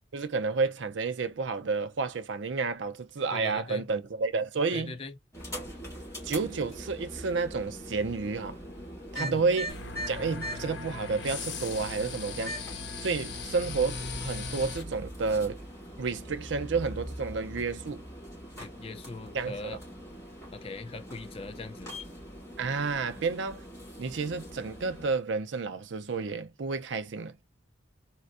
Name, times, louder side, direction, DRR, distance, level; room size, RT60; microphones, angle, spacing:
voice 1, 0.1-5.0 6.2-8.6 9.1-9.8 10.1-12.5 13.0-15.6 16.0-18.0 19.3-19.8 22.6-23.6 24.0-27.4, right 4 dB, 70° right, 0.5 m, -30 dB
voice 2, 3.3-3.9 4.7-5.2 9.2-9.4 18.6-19.8 20.5-21.9, left 3 dB, 30° left, 0.4 m, -41 dB
sound 1, 5.3-25.1, equal, 15° left, 2.0 m, -42 dB
sound 2, 9.7-14.8, left 4 dB, 65° left, 0.7 m, -39 dB
4.3 x 2.2 x 2.4 m
head